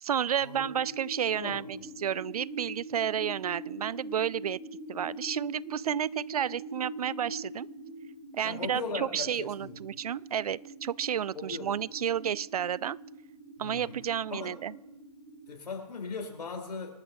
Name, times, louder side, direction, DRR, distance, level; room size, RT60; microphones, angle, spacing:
voice 1, 0.0-4.6 4.9-7.7 8.3-13.0 13.6-14.7, right 9 dB, 65° right, 0.4 m, -31 dB
sound 1, 0.5-15.5, right 2 dB, 30° right, 2.5 m, -44 dB
voice 2, 1.4-1.9 8.4-9.8 11.3-11.7 13.6-14.0 14.3-14.5 15.5-17.0, left 4 dB, 75° left, 4.6 m, -38 dB
27.0 x 12.5 x 3.0 m
hypercardioid pair, 160°, 21 cm